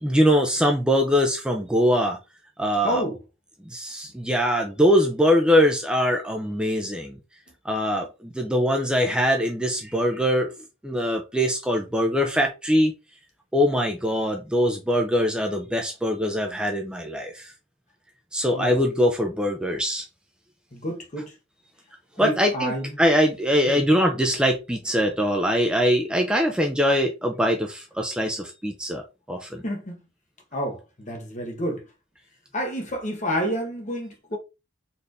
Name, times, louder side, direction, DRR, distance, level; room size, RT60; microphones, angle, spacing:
voice 1, 0.0-2.2 2.6-3.0 3.7-7.2 7.7-10.5 10.8-12.9 13.5-17.5 18.3-20.0 22.2-29.0 29.3-29.6, equal, 5° right, 0.5 m, -22 dB
voice 2, 2.8-3.2 18.5-18.8 20.7-21.3 22.2-23.0 23.7-23.9 29.6-30.0 30.5-31.8 32.5-34.4, equal, 40° left, 1.2 m, -29 dB
4.2 x 3.3 x 2.6 m
head